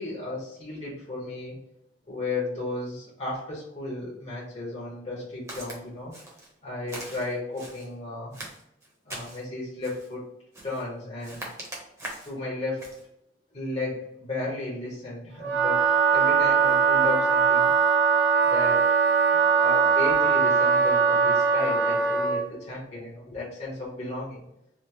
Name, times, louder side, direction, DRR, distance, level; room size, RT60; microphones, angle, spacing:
voice 1, 0.0-1.6 2.1-6.1 6.6-8.4 9.1-10.2 10.6-11.4 12.2-12.9 13.5-17.7 18.4-18.9 19.3-24.5, left 2 dB, 35° left, -6 dB, 0.8 m, -34 dB
Walk footsteps, 5.5-5.8 6.1-6.5 6.9-7.9 8.3-9.4 9.8-10.1 10.5-10.9 11.2-12.4 12.8-13.0, right 1 dB, 15° right, 0.9 m, -41 dB
Wind instrument woodwind instrument, 15.4-22.4, right 5 dB, 70° right, 0.6 m, -21 dB
3.4 x 2.4 x 2.9 m, 0.79 s
head